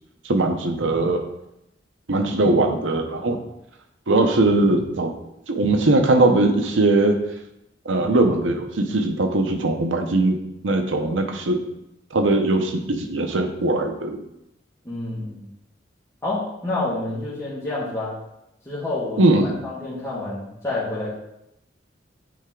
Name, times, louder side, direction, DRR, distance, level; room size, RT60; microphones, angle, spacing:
voice 1, 0.2-1.2 2.1-3.4 4.1-5.1 5.5-7.2 7.9-10.4 10.6-11.6 12.1-14.2 19.2-19.6, right 2 dB, 85° right, 5 dB, 0.8 m, -20 dB
voice 2, 14.8-15.5 16.2-18.1 18.6-21.1, left 2 dB, 15° left, -11 dB, 1.7 m, -28 dB
8.6 x 3.4 x 3.7 m, 0.84 s
head